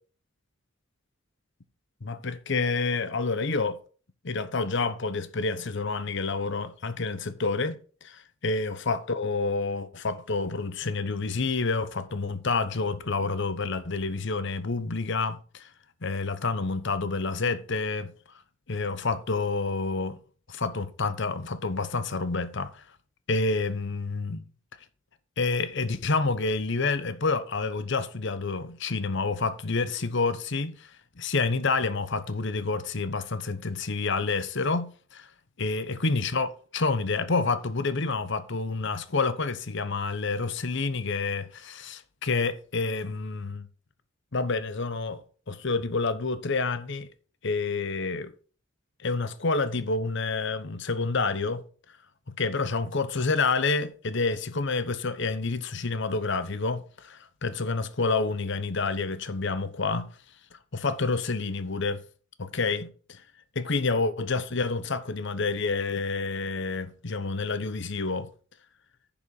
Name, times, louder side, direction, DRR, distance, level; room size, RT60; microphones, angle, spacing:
voice 1, 2.0-3.8 4.2-15.7 16.0-18.1 18.7-20.2 20.5-22.8 23.3-24.5 25.4-30.9 31.2-35.3 35.6-43.7 44.3-45.2 45.5-47.1 47.4-48.3 49.0-51.6 52.4-60.1 60.7-62.0 62.4-63.2 63.5-68.3, left 3 dB, 60° left, 1.0 m, -28 dB
10.5 x 7.2 x 4.0 m
head